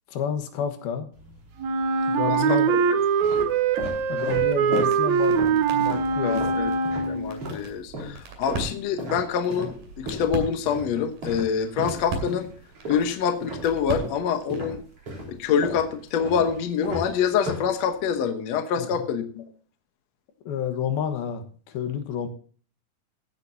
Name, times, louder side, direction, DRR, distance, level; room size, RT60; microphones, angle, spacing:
voice 1, 0.1-1.1 2.1-2.8 4.1-6.5 18.8-19.0 20.4-22.3, left 7 dB, 85° left, 7 dB, 3.3 m, -30 dB
sound 1, 1.1-1.9 2.5-7.7 7.9-14.2 14.5-18.2, equal, 40° right, 4.8 m, -36 dB
Wind instrument woodwind instrument, 1.6-7.4, right 6 dB, 70° right, 1.9 m, -23 dB
voice 2, 2.3-2.8 3.3-3.5 4.1-4.3 6.2-6.7 7.1-12.5 12.9-14.8 15.3-19.4, left 7 dB, 65° left, 7 dB, 1.8 m, -26 dB
sound 2, 3.9-14.8, right 3 dB, 90° right, 4.5 m, -39 dB
15.5 x 9.9 x 2.7 m, 0.42 s
omnidirectional pair, 4.2 m